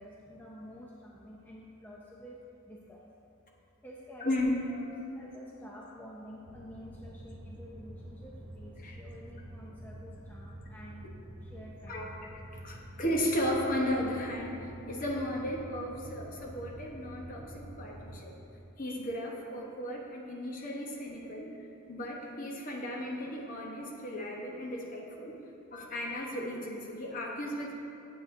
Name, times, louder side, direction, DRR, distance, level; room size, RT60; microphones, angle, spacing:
voice 1, 0.0-2.4 2.7-3.0 3.8-4.9 5.1-11.0 11.4-12.0, equal, 10° left, -4 dB, 0.5 m, -49 dB
voice 2, 4.2-4.6 8.8-9.0 11.9-12.1 12.6-14.5 14.9-18.3 18.8-21.6 21.9-25.4 25.7-27.7, left 1 dB, 40° left, -1 dB, 0.9 m, -34 dB
sound 1, 6.4-18.2, right 1 dB, 80° right, 0.6 m, -47 dB
8.2 x 7.7 x 2.6 m, 2.9 s
head